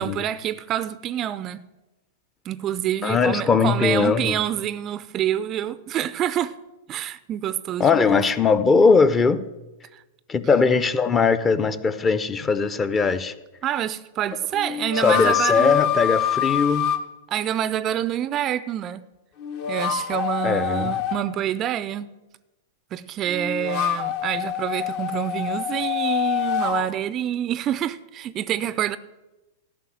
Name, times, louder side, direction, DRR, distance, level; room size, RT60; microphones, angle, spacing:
voice 1, 0.0-1.6 2.4-6.6 6.9-8.2 9.9-10.0 13.6-15.8 17.3-19.0 19.7-22.1 22.9-29.0, right 11 dB, 30° right, 0.4 m, -27 dB
voice 2, 3.0-4.4 7.8-9.4 10.3-13.3 15.0-16.9 20.4-20.9, left 5 dB, 20° left, 0.6 m, -20 dB
sound 1, 12.4-12.5 14.5-17.0 19.4-21.2 23.3-26.9, left 9 dB, 50° left, 0.9 m, -25 dB
13.5 x 5.4 x 7.5 m
figure-of-eight pair, 100°, 0 cm